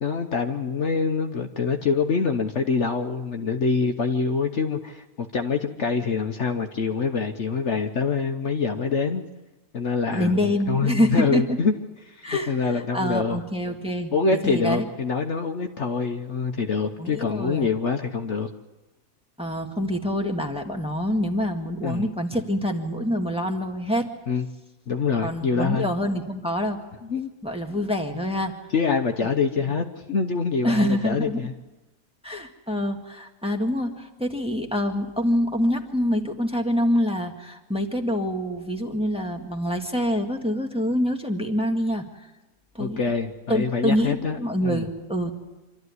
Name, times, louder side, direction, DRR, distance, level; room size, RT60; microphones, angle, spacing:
voice 1, 0.0-9.2 9.7-11.7 12.0-13.4 14.1-18.5 21.8-22.1 24.3-24.4 24.9-25.9 27.1-27.3 28.7-31.5 42.8-44.9, left 5 dB, 55° left, 5 dB, 1.2 m, -25 dB
voice 2, 10.1-11.6 12.2-12.5 12.9-14.9 17.0-17.7 19.4-24.1 25.2-26.8 27.4-28.5 30.6-31.4 32.2-42.0 42.7-43.0 43.5-45.3, equal, 5° right, 2 dB, 1.8 m, -26 dB
26.0 x 13.5 x 9.6 m, 1.1 s
omnidirectional pair, 1.5 m